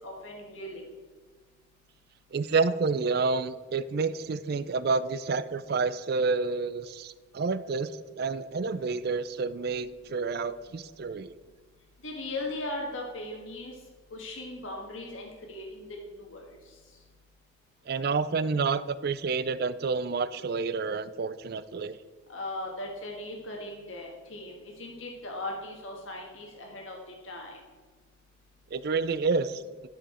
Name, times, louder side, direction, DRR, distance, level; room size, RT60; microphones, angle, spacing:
voice 1, 0.0-0.8 12.0-13.7 14.1-16.5 22.3-27.0 27.2-27.6, left 2 dB, 85° left, 0 dB, 1.5 m, -38 dB
voice 2, 2.3-11.3 17.9-22.0 28.7-29.6, right 4 dB, 50° right, 15 dB, 0.4 m, -29 dB
12.0 x 4.9 x 4.3 m, 1.4 s
head